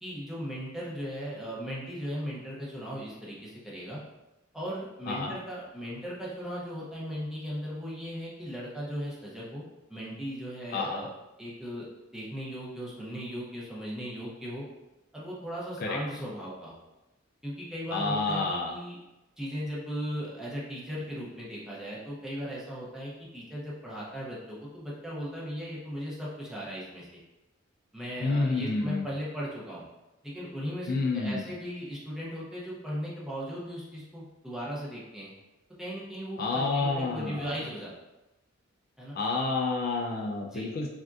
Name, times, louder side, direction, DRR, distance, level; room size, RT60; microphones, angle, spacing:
voice 1, 0.0-4.0 4.5-9.6 9.9-11.1 11.4-11.9 12.1-14.6 15.1-16.8 17.4-19.0 19.4-27.1 27.9-29.9 30.2-35.3 35.8-37.9 39.0-39.2 40.5-40.7, equal, 5° right, -7 dB, 0.7 m, -37 dB
voice 2, 5.1-5.4 10.7-11.1 15.8-16.0 17.9-18.7 28.2-29.1 30.9-31.5 36.4-37.6 39.1-40.9, left 3 dB, 50° left, 0 dB, 0.4 m, -29 dB
3.5 x 2.6 x 2.3 m, 1.0 s
head